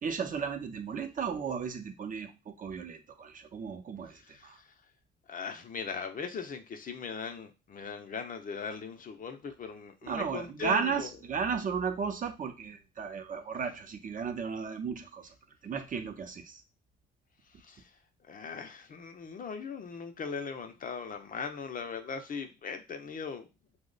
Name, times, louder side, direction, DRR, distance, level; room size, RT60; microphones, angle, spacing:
voice 1, 0.0-4.6 10.1-15.3 15.6-16.6, right 6 dB, 40° right, 6 dB, 0.6 m, -34 dB
voice 2, 4.1-4.7 5.3-11.1 17.5-17.9 18.2-23.5, left 5 dB, 45° left, 7 dB, 0.6 m, -39 dB
2.8 x 2.1 x 3.9 m, 0.27 s
cardioid pair, 90°, 20 cm